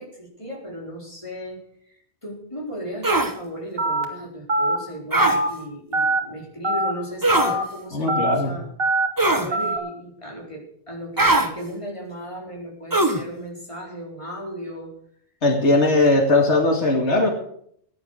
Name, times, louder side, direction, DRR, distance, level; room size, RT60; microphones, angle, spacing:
voice 1, 0.0-1.6 1.9-8.6 9.3-14.9, equal, 25° left, -1 dB, 4.4 m, -35 dB
sound 1, 3.0-3.3 5.1-5.4 7.2-7.5 9.2-9.5 11.2-11.5 12.9-13.2, right 2 dB, 20° right, 1.3 m, -19 dB
Telephone, 3.8-4.0 4.5-4.8 5.2-5.5 5.9-6.2 6.6-6.9 7.4-7.6 8.1-8.3 8.8-9.1 9.5-9.8, right 1 dB, 55° right, 2.3 m, -22 dB
voice 2, 7.9-8.5 15.4-17.3, left 2 dB, 85° left, 3 dB, 2.5 m, -19 dB
15.5 x 10.0 x 6.4 m, 0.65 s
omnidirectional pair, 1.2 m